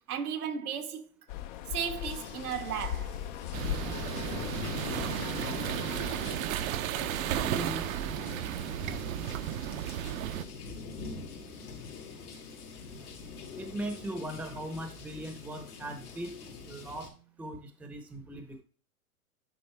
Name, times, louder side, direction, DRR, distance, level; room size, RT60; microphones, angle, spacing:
voice 1, 0.1-1.1 1.7-3.2 8.2-8.6, right 7 dB, 85° right, 1.3 m, -35 dB
sound 1, 1.3-6.4, left 11 dB, 35° left, 0.4 m, -38 dB
sound 2, 2.0-17.1, left 4 dB, 90° left, 2.4 m, -44 dB
sound 3, 3.5-10.4, right 12 dB, 65° right, 0.7 m, -34 dB
voice 2, 7.4-7.9 13.6-16.4 16.7-17.1 17.4-18.6, right 1 dB, 5° right, 0.7 m, -39 dB
9.8 x 3.9 x 3.3 m
hypercardioid pair, 125°, 44 cm